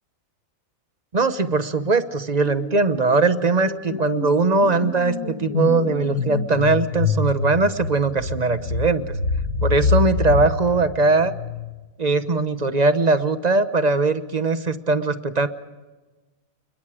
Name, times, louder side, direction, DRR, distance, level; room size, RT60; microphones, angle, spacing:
voice 1, 1.1-9.1 9.6-11.3 12.0-15.5, right 3 dB, 35° right, 11 dB, 1.1 m, -20 dB
sound 1, 2.5-2.8 3.0-11.8, left 4 dB, 90° left, 1.9 m, -26 dB
30.0 x 21.0 x 5.0 m, 1.2 s
omnidirectional pair, 1.4 m